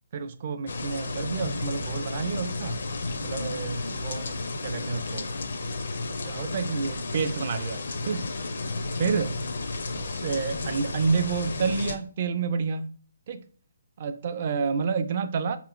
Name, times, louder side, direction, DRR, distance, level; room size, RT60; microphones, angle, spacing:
voice 1, 0.1-2.8 3.2-5.3 6.2-8.2 9.0-9.4 9.9-12.9 13.3-13.4 14.0-15.6, right 5 dB, 30° right, 0.4 m, -29 dB
sound 1, 0.7-12.0, left 3 dB, 60° left, 0.5 m, -32 dB
5.0 x 2.9 x 2.3 m
hypercardioid pair, 175°, 0 cm